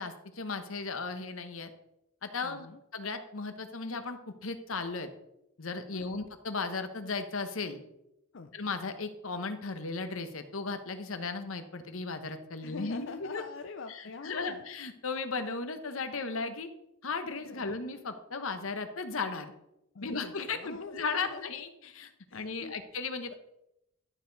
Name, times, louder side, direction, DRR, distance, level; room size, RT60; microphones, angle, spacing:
voice 1, 0.0-1.7 2.2-5.1 5.6-7.8 8.5-13.4 13.9-16.7 17.0-19.5 20.0-23.3, left 4 dB, 85° left, 8 dB, 1.1 m, -36 dB
voice 2, 2.4-2.8 5.9-6.2 8.3-8.5 12.6-14.6 17.4-17.8 19.9-21.5 22.3-22.8, left 4 dB, 65° left, 7 dB, 0.5 m, -44 dB
12.0 x 6.7 x 4.0 m, 0.84 s
head